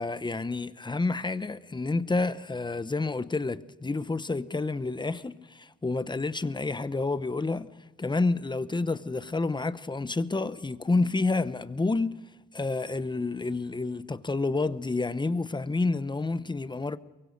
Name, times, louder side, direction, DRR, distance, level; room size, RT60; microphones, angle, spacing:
voice 1, 0.0-7.7 8.0-12.2 12.5-17.0, left 3 dB, 15° left, 0.9 m, -29 dB
23.5 x 23.0 x 6.6 m
cardioid pair, 90°, 30 cm